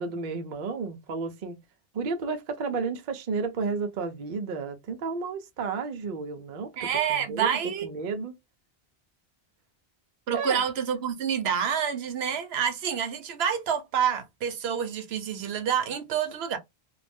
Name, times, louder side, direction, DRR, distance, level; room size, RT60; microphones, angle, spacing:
voice 1, 0.0-1.6 1.9-8.3 10.3-10.7, right 4 dB, 55° right, 0.6 m, -32 dB
voice 2, 6.8-7.9 10.3-16.6, right 8 dB, 75° right, 0.9 m, -28 dB
2.5 x 2.0 x 3.3 m
omnidirectional pair, 1.1 m